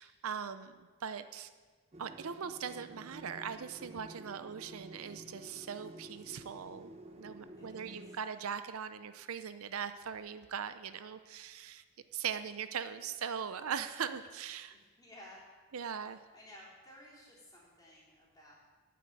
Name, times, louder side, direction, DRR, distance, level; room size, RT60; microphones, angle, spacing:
voice 1, 0.0-1.5 2.0-11.8 12.1-14.8 15.7-16.2, right 7 dB, 70° right, 11 dB, 0.5 m, -40 dB
sound 1, 1.9-8.2, right 1 dB, 30° right, 0.8 m, -51 dB
voice 2, 7.6-8.2 14.7-15.5 16.1-18.5, left 1 dB, 15° left, -6 dB, 3.5 m, -56 dB
9.3 x 7.6 x 9.1 m, 1.4 s
head